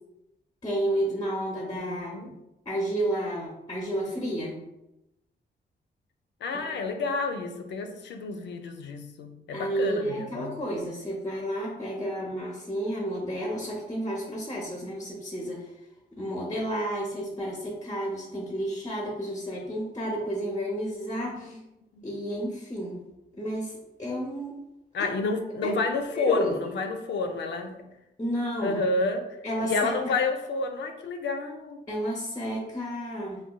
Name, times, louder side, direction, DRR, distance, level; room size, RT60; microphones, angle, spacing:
voice 1, 0.6-2.1 2.7-4.6 6.5-6.6 9.5-15.7 16.1-21.6 22.0-23.0 23.3-24.5 25.0-25.1 25.6-25.7 26.1-26.5 28.2-28.8 29.4-30.1 31.9-33.4, right 1 dB, 20° left, -2 dB, 0.5 m, -31 dB
voice 2, 1.7-2.3 6.4-10.5 21.4-21.5 21.9-22.1 24.9-27.8 28.6-29.3 29.6-31.8, left 3 dB, 75° left, 5 dB, 0.4 m, -30 dB
3.9 x 2.2 x 2.2 m, 0.91 s
wide cardioid pair, 130°, 18 cm